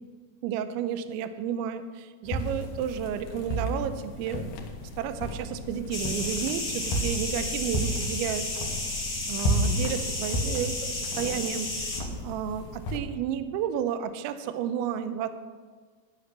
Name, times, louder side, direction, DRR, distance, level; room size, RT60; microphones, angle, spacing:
voice 1, 0.4-4.5 5.0-8.5 9.3-12.0 12.2-15.3, right 9 dB, 85° right, 10 dB, 2.8 m, -32 dB
sound 1, 2.2-13.0, equal, 85° left, 1.8 m, -33 dB
sound 2, 5.9-12.0, left 2 dB, 70° left, 0.6 m, -33 dB
14.0 x 6.1 x 9.9 m, 1.5 s
omnidirectional pair, 5.8 m